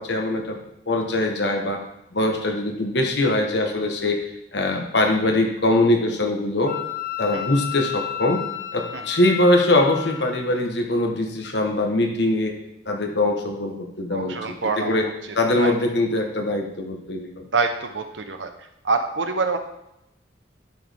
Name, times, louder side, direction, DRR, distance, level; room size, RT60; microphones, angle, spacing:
voice 1, 0.0-1.8 2.1-4.2 4.5-6.8 7.2-8.4 8.7-12.5 12.8-14.3 14.6-15.1 15.3-17.4, left 1 dB, 65° left, 3 dB, 1.3 m, -22 dB
Wind instrument woodwind instrument, 6.7-10.4, left 11 dB, 45° left, 0.9 m, -32 dB
voice 2, 14.1-15.1 15.6-15.7 17.5-18.5 18.8-19.6, right 4 dB, 85° right, 6 dB, 0.9 m, -25 dB
11.0 x 6.3 x 3.5 m, 0.83 s
head